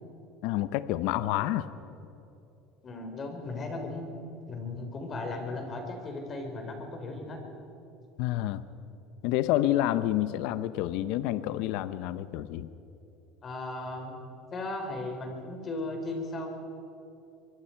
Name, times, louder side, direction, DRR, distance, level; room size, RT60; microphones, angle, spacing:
voice 1, 0.4-1.7 8.2-8.6 9.2-12.7, left 14 dB, 70° left, 14 dB, 0.8 m, -28 dB
voice 2, 2.8-4.1 4.5-7.4 13.4-14.2 14.5-16.5, left 2 dB, 30° left, 3 dB, 4.3 m, -36 dB
24.0 x 23.5 x 4.6 m, 2.8 s
supercardioid pair, 125°, 0 cm